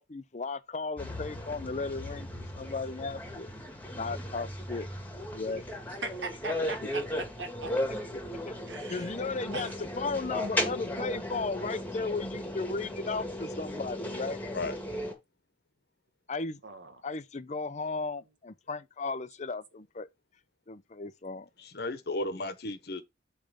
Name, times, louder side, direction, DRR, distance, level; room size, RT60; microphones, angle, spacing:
voice 1, 0.0-2.3 2.6-3.5 3.9-4.9 5.3-5.7 6.6-6.9 8.1-8.6 8.9-14.4 16.3-16.6 17.0-20.1 20.7-21.5, left 3 dB, 40° left, 0.6 m, -35 dB
sound 1, 1.0-15.1, left 1 dB, 10° left, 1.8 m, -36 dB
voice 2, 6.0-7.0 7.4-7.7 8.7-9.1 9.5-9.7 16.6-17.0, right 3 dB, 80° right, 1.7 m, -39 dB
voice 3, 21.6-23.0, left 2 dB, 60° left, 1.2 m, -34 dB
8.8 x 3.4 x 5.1 m
head